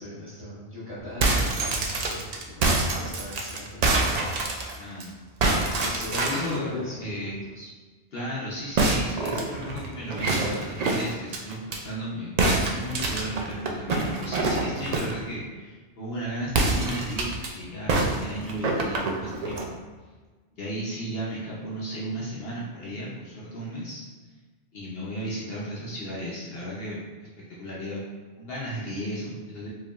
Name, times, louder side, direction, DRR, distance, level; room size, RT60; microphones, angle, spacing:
voice 1, 0.0-4.3 5.8-7.7, left 1 dB, 10° right, -11 dB, 1.3 m, -38 dB
sound 1, 1.0-5.0 5.4-6.6 8.8-11.8 12.4-15.2 16.5-17.5 17.9-19.7, right 2 dB, 60° right, 0.4 m, -26 dB
voice 2, 4.8-5.2 6.1-6.7 6.9-7.4 8.1-19.6 20.6-24.0 24.7-27.0 27.5-28.0 28.4-29.7, equal, 60° left, -6 dB, 0.9 m, -35 dB
4.6 x 2.8 x 2.4 m, 1.4 s
omnidirectional pair, 1.2 m